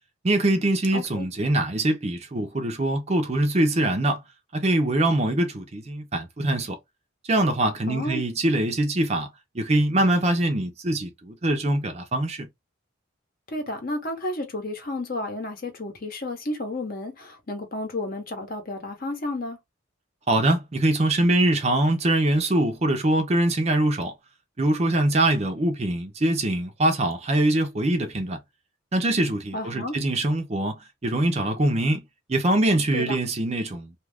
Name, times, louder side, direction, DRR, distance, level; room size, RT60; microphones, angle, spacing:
voice 1, 0.2-4.2 4.5-6.8 7.2-9.3 9.5-12.5 20.3-24.1 24.6-28.4 28.9-33.9, right 1 dB, 30° right, 0.5 m, -23 dB
voice 2, 0.9-1.3 7.9-8.2 13.5-19.6 29.5-30.0 32.9-33.0, left 2 dB, 45° left, 0.9 m, -32 dB
2.7 x 2.3 x 3.3 m
head